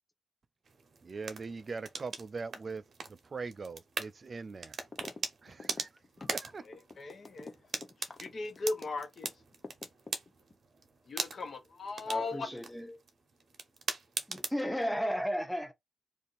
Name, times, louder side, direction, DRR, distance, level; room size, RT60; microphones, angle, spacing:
sound 1, 0.6-14.7, right 4 dB, 60° right, 0.8 m, -42 dB
voice 1, 1.1-2.8 3.3-4.7 5.4-5.9 6.3-6.6, right 4 dB, 45° right, 0.3 m, -41 dB
sound 2, 4.9-5.2 5.5-9.3 9.6-10.5, left 3 dB, 35° left, 0.7 m, -46 dB
voice 2, 6.6-7.5 8.0-9.3 11.1-12.5, left 3 dB, 60° left, 1.0 m, -38 dB
voice 3, 12.1-13.0 14.3-15.7, equal, 5° left, 0.7 m, -34 dB
2.6 x 2.5 x 3.9 m
cardioid pair, 90°, 0 cm